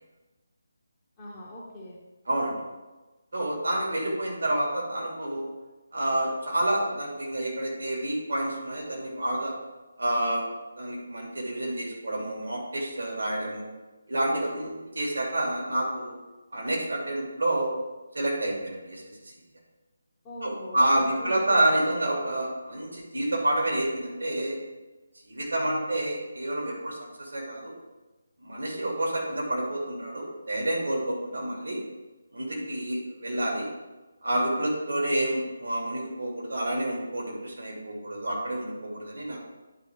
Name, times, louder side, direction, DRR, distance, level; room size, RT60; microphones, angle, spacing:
voice 1, 1.2-2.0 20.2-22.2, left 1 dB, 20° left, -5 dB, 1.2 m, -42 dB
voice 2, 2.3-2.6 3.3-5.5 5.9-9.5 10.0-10.5 10.8-13.7 14.1-16.1 16.5-17.7 18.1-19.3 20.4-24.6 25.2-27.7 28.4-31.8 32.3-33.7 34.2-39.5, right 1 dB, 65° right, -3 dB, 2.7 m, -29 dB
11.0 x 4.9 x 3.6 m, 1.1 s
figure-of-eight pair, 150°, 0 cm